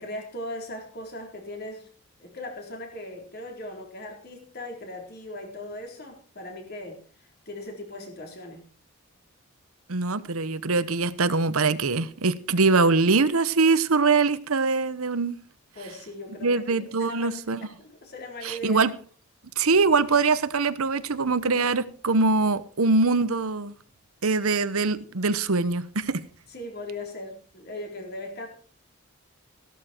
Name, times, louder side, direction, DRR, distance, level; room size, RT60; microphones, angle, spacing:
voice 1, 0.0-1.9 2.2-8.7 15.8-18.8 26.5-28.5, left 1 dB, 45° left, 3.9 m, -39 dB
voice 2, 9.9-15.4 16.4-17.7 18.4-18.9 19.6-23.7 24.2-26.2, right 4 dB, 80° right, 1.0 m, -23 dB
14.5 x 12.5 x 4.5 m
head